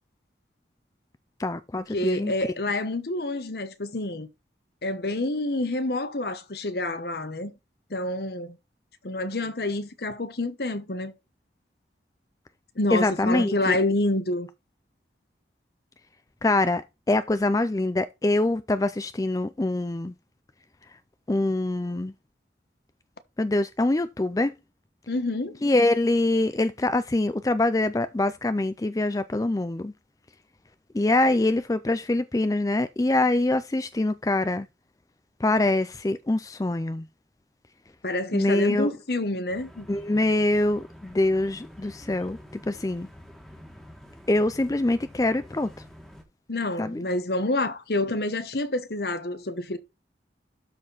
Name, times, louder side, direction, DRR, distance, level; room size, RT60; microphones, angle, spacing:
voice 1, 1.4-2.3 12.9-13.8 16.4-20.1 21.3-22.1 23.4-24.5 25.6-29.9 30.9-34.7 35.4-37.1 38.3-38.9 39.9-42.4 42.7-43.1 44.3-45.7 46.8-47.0, left 2 dB, 20° left, 0.4 m, -24 dB
voice 2, 1.9-4.3 4.8-7.5 7.9-8.6 9.0-11.1 12.8-14.5 25.1-25.6 38.0-39.9 46.5-49.8, left 2 dB, 60° left, 1.1 m, -28 dB
sound 1, 39.5-46.2, equal, ahead, 1.6 m, -47 dB
12.5 x 4.4 x 3.9 m
head